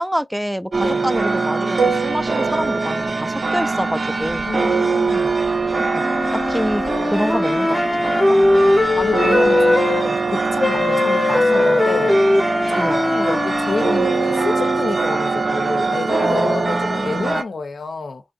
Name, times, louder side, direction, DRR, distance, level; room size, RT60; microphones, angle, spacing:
voice 1, 0.0-4.4 5.8-6.0 6.3-8.1 10.8-11.0 12.8-13.0 16.2-17.4, equal, 5° right, 0.3 m, -26 dB
sound 1, 0.7-17.4, right 3 dB, 60° right, 0.5 m, -22 dB
sound 2, 1.8-3.7, right 5 dB, 85° right, 1.2 m, -26 dB
voice 2, 4.5-5.3 8.3-12.1 12.7-18.2, left 4 dB, 80° left, 0.6 m, -28 dB
sound 3, 6.0-10.1 10.6-14.8, left 2 dB, 30° left, 0.6 m, -19 dB
3.1 x 2.6 x 2.4 m
cardioid pair, 40°, 0 cm